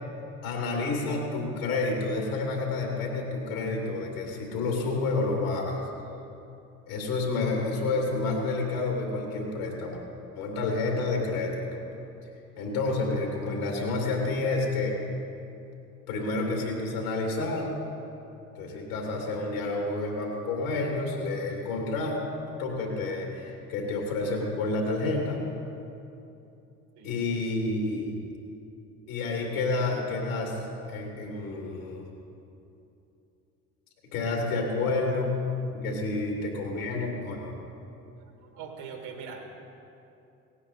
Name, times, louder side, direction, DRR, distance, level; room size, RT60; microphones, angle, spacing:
voice 1, 0.4-5.8 6.9-10.0 10.3-11.8 12.6-14.9 16.1-17.8 18.5-22.1 22.5-25.4 27.0-28.2 29.1-30.6 30.9-32.1 34.0-35.4 35.7-37.5, left 3 dB, 80° left, 0 dB, 2.8 m, -29 dB
voice 2, 38.2-39.5, right 6 dB, 65° right, 4 dB, 2.0 m, -43 dB
17.5 x 9.7 x 4.2 m, 2.8 s
hypercardioid pair, 55°, 43 cm